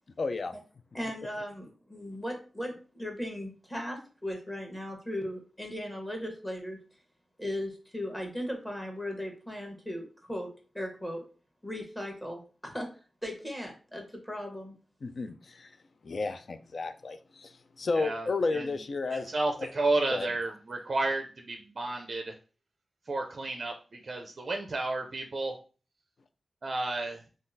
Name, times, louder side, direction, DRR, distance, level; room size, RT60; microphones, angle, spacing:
voice 1, 0.2-0.5 15.0-15.7 16.0-19.3 19.6-19.7 20.1-20.3, left 3 dB, 60° left, 9 dB, 0.3 m, -32 dB
voice 2, 0.9-6.8 7.4-10.5 10.7-11.2 11.6-12.9 13.2-14.7, equal, 10° left, 1 dB, 1.0 m, -37 dB
voice 3, 18.0-18.3 18.5-18.6 19.1-22.3 23.1-23.7 24.0-25.5 26.6-27.2, right 2 dB, 50° right, 3 dB, 0.4 m, -31 dB
3.7 x 2.4 x 2.6 m, 0.37 s
wide cardioid pair, 90°, 0 cm